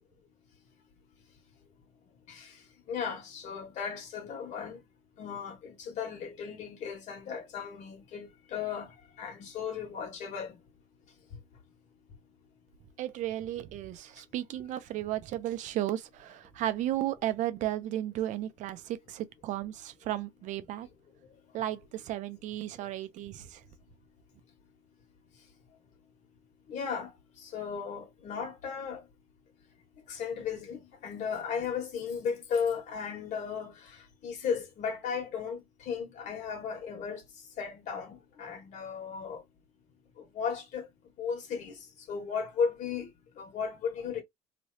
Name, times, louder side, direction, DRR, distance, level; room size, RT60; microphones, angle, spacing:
voice 1, 2.9-4.8 5.2-10.6 26.7-27.1 27.4-29.0 30.1-37.2 37.6-39.4 40.2-40.9 41.2-43.1 43.4-44.2, left 6 dB, 60° left, 1.7 m, -35 dB
voice 2, 13.0-20.9 21.5-23.6, right 13 dB, 60° right, 0.6 m, -34 dB
3.1 x 2.9 x 2.7 m
cardioid pair, 110°, 14 cm